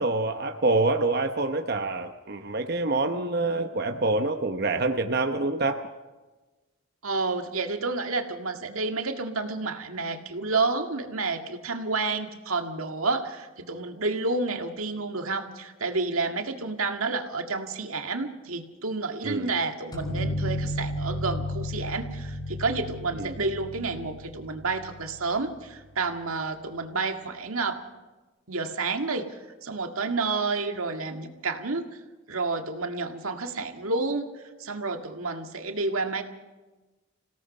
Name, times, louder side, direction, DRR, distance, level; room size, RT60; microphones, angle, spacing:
voice 1, 0.0-5.8 19.2-19.5 23.1-23.4, right 2 dB, 50° right, 6 dB, 0.9 m, -26 dB
voice 2, 7.0-27.8 28.5-29.3 29.6-31.8 32.3-34.3 34.6-36.2, right 3 dB, 90° right, 5 dB, 1.9 m, -30 dB
sound 1, 19.9-25.4, left 1 dB, 20° left, 5.4 m, -33 dB
27.5 x 17.5 x 5.4 m, 1.2 s
head